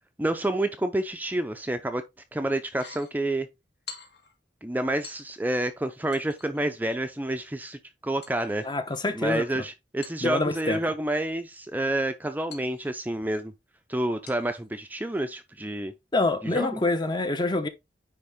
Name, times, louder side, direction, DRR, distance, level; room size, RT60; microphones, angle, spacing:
voice 1, 0.2-2.0 2.3-3.5 4.6-8.7 9.2-13.5 13.9-15.9 16.4-16.8, right 1 dB, 10° right, 0.5 m, -29 dB
sound 1, 2.7-3.1 3.9-4.4 5.0-5.6 6.1-6.7 8.2-9.3 10.0-10.9 12.5-13.3 14.3-14.7 15.1-15.2, left 6 dB, 65° left, 2.1 m, -47 dB
voice 2, 8.6-9.4 10.2-10.8 16.1-17.7, left 2 dB, 25° left, 0.8 m, -26 dB
9.8 x 3.5 x 3.6 m
head